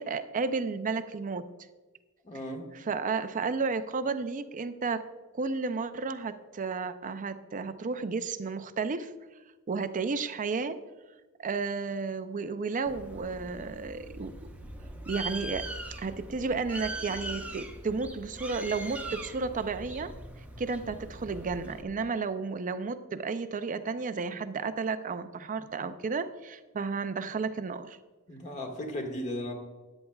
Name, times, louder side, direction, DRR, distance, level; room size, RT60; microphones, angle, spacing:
voice 1, 0.0-1.5 2.7-5.0 5.3-9.1 9.7-10.8 11.4-14.3 15.1-15.7 16.0-20.1 20.6-28.0, right 4 dB, 35° right, 11 dB, 0.5 m, -32 dB
voice 2, 2.2-2.6 28.3-29.5, left 1 dB, 35° left, 3 dB, 1.6 m, -36 dB
Bird, 12.9-21.8, right 1 dB, 5° right, 0.8 m, -41 dB
13.5 x 9.9 x 2.3 m, 1.2 s
head